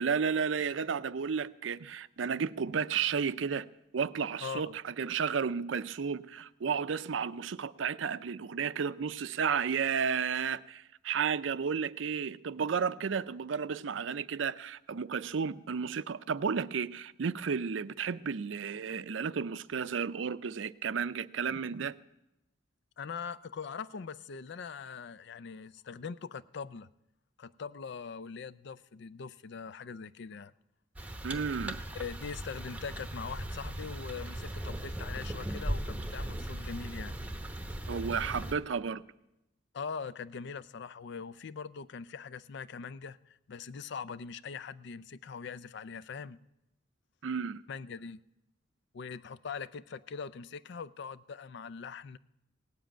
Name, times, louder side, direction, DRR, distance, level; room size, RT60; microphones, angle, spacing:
voice 1, 0.0-3.7 3.9-21.9 31.2-31.8 37.9-39.0 47.2-47.6, right 6 dB, 80° right, 0.5 m, -32 dB
voice 2, 4.4-4.8 23.0-26.9 27.4-30.5 31.9-37.2 39.7-46.4 47.7-48.2 48.9-52.2, left 5 dB, 65° left, 0.4 m, -42 dB
sound 1, 31.0-38.6, right 1 dB, 10° right, 0.9 m, -38 dB
17.5 x 7.5 x 9.0 m
head